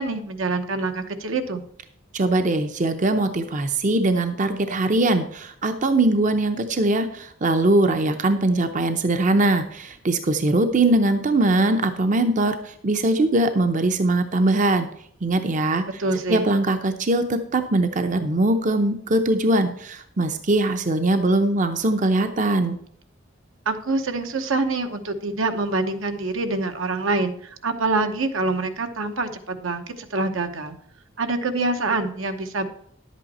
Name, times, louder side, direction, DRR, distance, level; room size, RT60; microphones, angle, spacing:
voice 1, 0.0-1.6 16.0-16.5 23.6-30.8 31.2-32.7, right 3 dB, 80° right, 6 dB, 1.0 m, -25 dB
voice 2, 2.1-14.9 15.2-16.0 16.3-22.8, right 2 dB, 40° right, 8 dB, 0.6 m, -21 dB
11.0 x 8.3 x 4.2 m, 0.67 s
head